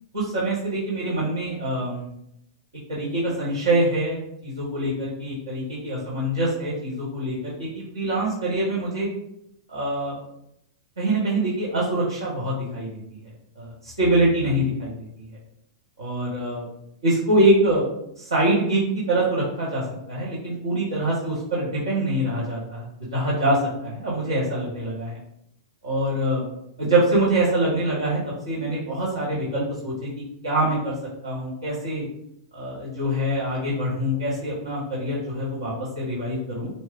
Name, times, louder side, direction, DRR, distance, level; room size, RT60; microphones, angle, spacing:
voice 1, 0.1-2.1 2.9-9.1 9.7-10.1 11.0-13.0 13.6-15.1 16.0-16.7 17.0-17.8 18.2-25.2 25.8-26.4 26.8-28.2 28.5-30.1 30.4-30.9 31.2-32.0 32.5-36.7, right 1 dB, 85° right, -6 dB, 1.8 m, -24 dB
6.1 x 2.2 x 3.8 m, 0.80 s
hypercardioid pair, 115°, 2 cm